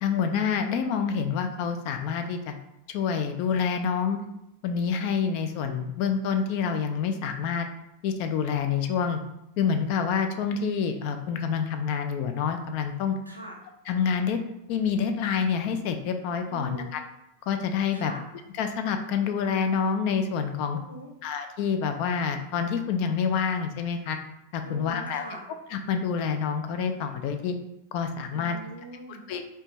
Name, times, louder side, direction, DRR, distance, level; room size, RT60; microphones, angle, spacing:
voice 1, 0.0-2.5 2.9-4.2 4.6-7.7 8.0-9.2 9.6-13.1 13.9-14.4 14.7-17.0 17.5-18.1 18.5-20.8 21.2-24.2 24.5-25.3 25.7-27.6 27.9-28.6 29.1-29.4, left 6 dB, 45° left, 6 dB, 0.3 m, -27 dB
voice 2, 13.3-13.6 16.5-17.0 17.9-18.2 20.7-21.1 24.6-25.4 28.3-29.2, right 1 dB, 90° right, 0 dB, 0.5 m, -41 dB
2.5 x 2.2 x 3.0 m, 0.83 s
figure-of-eight pair, 90°, 0 cm